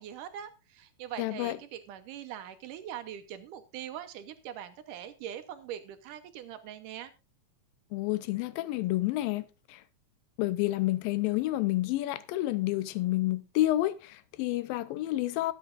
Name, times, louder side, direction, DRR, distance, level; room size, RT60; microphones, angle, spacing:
voice 1, 0.0-7.1, right 10 dB, 75° right, 2.2 m, -42 dB
voice 2, 1.2-1.6 7.9-9.8 10.4-15.5, left 16 dB, 85° left, 2.4 m, -29 dB
20.5 x 7.8 x 2.5 m
omnidirectional pair, 4.0 m